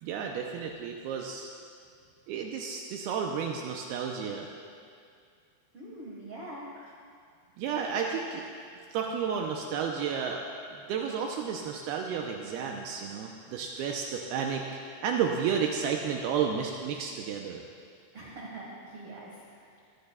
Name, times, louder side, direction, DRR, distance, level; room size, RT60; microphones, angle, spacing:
voice 1, 0.0-1.5 2.3-4.5 7.6-8.5 8.9-10.5 10.7-14.6 15.0-17.6, right 7 dB, 80° right, 1 dB, 2.5 m, -32 dB
voice 2, 5.7-6.6 18.1-19.8, right 2 dB, 55° right, -4 dB, 1.6 m, -44 dB
20.5 x 15.0 x 2.3 m, 2.3 s
omnidirectional pair, 4.7 m